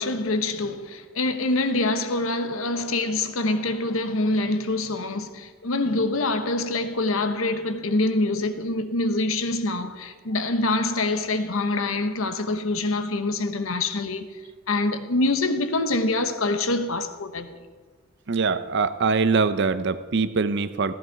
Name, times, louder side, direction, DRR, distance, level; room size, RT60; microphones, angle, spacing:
voice 1, 0.0-14.3 14.7-17.6, left 2 dB, 85° left, 1.1 m, -25 dB
voice 2, 18.3-20.9, right 4 dB, 55° right, 0.6 m, -23 dB
15.0 x 14.0 x 4.7 m
head